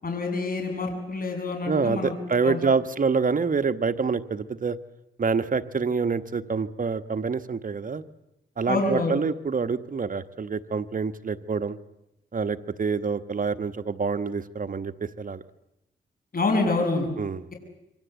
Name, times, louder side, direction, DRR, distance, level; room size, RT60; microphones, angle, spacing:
voice 1, 0.0-2.1 2.4-2.6 8.7-9.2 16.3-17.1, left 3 dB, 50° left, 2 dB, 7.4 m, -26 dB
voice 2, 1.7-4.8 5.2-8.0 8.6-11.8 12.3-15.4 17.2-17.4, right 5 dB, 45° right, 9 dB, 1.2 m, -26 dB
27.0 x 24.0 x 8.2 m, 0.89 s
cardioid pair, 75°, 19 cm